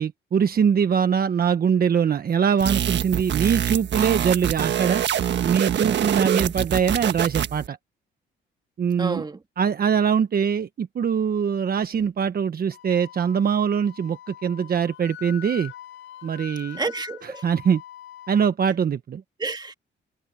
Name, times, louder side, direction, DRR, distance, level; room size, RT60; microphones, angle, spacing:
voice 1, 0.0-5.0 5.4-7.8 8.8-9.2 9.6-15.7 16.2-16.8 17.2-17.8 18.3-19.2, right 7 dB, 50° right, 1.3 m, -23 dB
sound 1, 2.6-7.7, right 10 dB, 65° right, 1.5 m, -25 dB
voice 2, 6.2-6.5 9.0-9.4 16.8-17.4 19.4-19.7, right 3 dB, 20° right, 2.2 m, -30 dB
Wind instrument woodwind instrument, 12.7-18.5, left 11 dB, 80° left, 7.0 m, -43 dB
cardioid pair, 90°, 20 cm